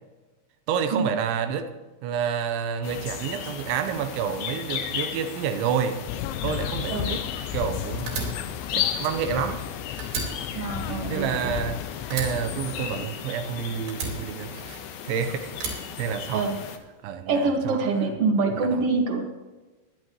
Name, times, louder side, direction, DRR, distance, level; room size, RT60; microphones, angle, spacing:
voice 1, 0.7-1.7 2.0-6.0 6.4-7.3 7.5-8.3 8.7-9.7 11.1-11.8 12.1-16.5 17.0-18.1 18.5-18.8, right 7 dB, 85° right, 8 dB, 3.3 m, -29 dB
sound 1, 2.8-16.8, left 9 dB, 70° left, 2.7 m, -35 dB
sound 2, 6.1-13.1, left 11 dB, 90° left, 2.9 m, -34 dB
Fire, 8.1-9.7 10.0-11.7 12.1-13.4 13.9-15.0 15.5-16.7, right 3 dB, 65° right, 5.2 m, -35 dB
voice 2, 10.5-11.6 16.3-16.6 17.3-19.3, right 3 dB, 50° right, 1 dB, 2.0 m, -25 dB
21.5 x 11.0 x 3.1 m, 1.2 s
omnidirectional pair, 5.2 m